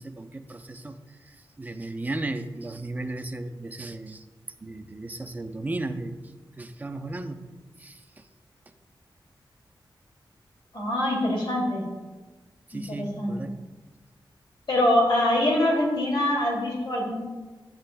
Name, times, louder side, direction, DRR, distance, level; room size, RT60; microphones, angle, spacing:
voice 1, 0.0-4.2 4.6-6.2 6.6-7.5 7.8-8.2 12.7-13.6, right 2 dB, 20° right, 6 dB, 0.5 m, -35 dB
voice 2, 10.7-11.8 12.7-13.3 14.7-17.1, left 1 dB, 65° left, -3 dB, 2.5 m, -24 dB
13.0 x 8.7 x 2.2 m, 1.3 s
wide cardioid pair, 135°, 8 cm